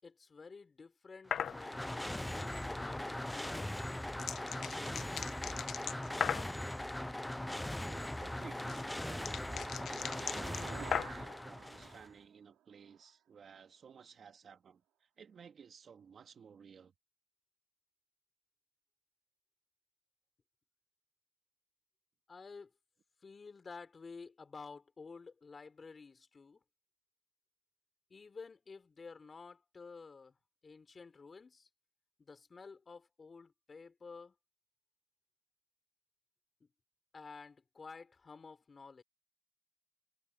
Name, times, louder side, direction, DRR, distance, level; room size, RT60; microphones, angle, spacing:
voice 1, 0.0-3.7 22.3-22.7 23.2-26.6 28.1-30.3 30.6-31.7 32.2-34.3 36.6-36.7 37.1-39.0, left 4 dB, 35° left, 4.8 m, -52 dB
sound 1, 1.3-1.6 3.5-6.6 8.1-11.3, left 8 dB, 65° left, 1.1 m, -38 dB
sound 2, 1.3-12.1, left 1 dB, 10° left, 0.4 m, -40 dB
voice 2, 7.8-16.9, right 7 dB, 50° right, 2.3 m, -56 dB
sound 3, 8.8-13.1, right 13 dB, 90° right, 2.7 m, -54 dB
cardioid pair, 90°, 0 cm